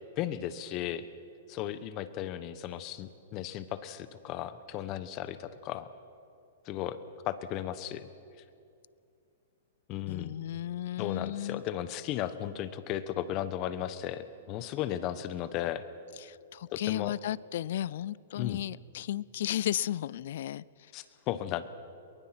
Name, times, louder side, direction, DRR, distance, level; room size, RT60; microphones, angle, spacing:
voice 1, 0.2-1.1 1.5-5.9 6.7-7.0 7.3-8.1 9.9-10.3 11.0-15.8 16.7-17.1 18.3-18.6 20.9-21.6, left 12 dB, 35° left, 13 dB, 1.1 m, -35 dB
voice 2, 10.1-11.6 16.2-20.9, left 12 dB, 65° left, 22 dB, 0.4 m, -34 dB
22.5 x 21.0 x 6.0 m, 2.5 s
hypercardioid pair, 140°, 0 cm